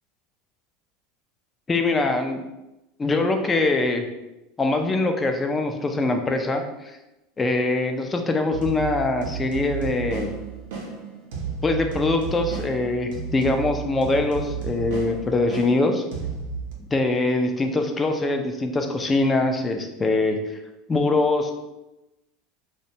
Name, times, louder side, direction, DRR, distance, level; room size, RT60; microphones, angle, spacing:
voice 1, 1.7-2.4 3.0-4.1 4.6-7.0 7.4-10.3 11.6-16.0 16.9-20.6 20.9-21.5, left 2 dB, 20° left, 5 dB, 0.4 m, -23 dB
sound 1, 8.5-16.7, right 6 dB, 75° right, 0.6 m, -33 dB
2.4 x 2.1 x 2.8 m, 0.96 s
hypercardioid pair, 95°, 0 cm